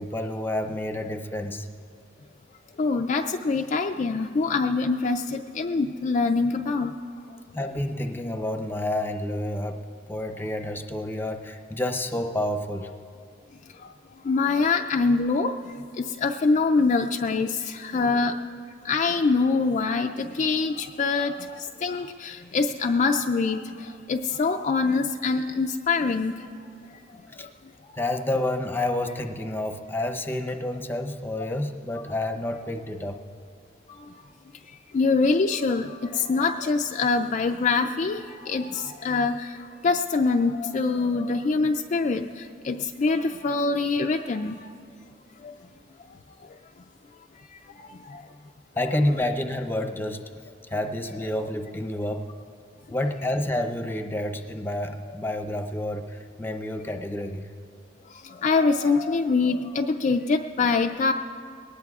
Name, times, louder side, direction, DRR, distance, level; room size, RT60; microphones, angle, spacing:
voice 1, 0.0-1.7 7.5-9.8 10.1-12.9 27.3-27.5 28.0-33.2 48.8-50.2 50.7-52.2 52.9-57.5, left 1 dB, 10° left, 4 dB, 0.7 m, -29 dB
voice 2, 2.8-6.9 14.3-15.5 16.0-18.3 18.9-20.1 20.4-21.3 21.8-23.6 24.1-26.3 31.9-32.0 34.9-39.5 39.8-42.3 42.6-44.6 58.4-61.1, left 4 dB, 40° left, 4 dB, 0.4 m, -24 dB
21.5 x 18.5 x 2.4 m, 2.3 s
head